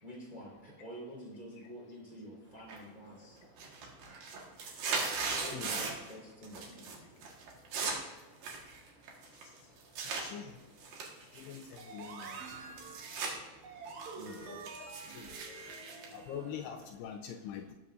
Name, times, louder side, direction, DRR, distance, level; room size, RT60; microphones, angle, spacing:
voice 1, 0.0-3.4 5.4-7.2 14.1-14.5, equal, 10° right, -4 dB, 3.1 m, -48 dB
sound 1, 2.7-3.1 3.4-6.1 6.4-7.0 7.2-10.2 10.8-13.3 13.7-16.9, right 4 dB, 60° right, 2.6 m, -39 dB
voice 2, 10.2-10.5 11.4-12.6 14.5-14.6 15.1-15.3 16.1-17.7, left 8 dB, 80° left, 4 dB, 2.4 m, -43 dB
sound 2, 11.8-16.7, right 4 dB, 80° right, 1.7 m, -48 dB
19.0 x 8.8 x 2.6 m, 1.2 s
omnidirectional pair, 5.2 m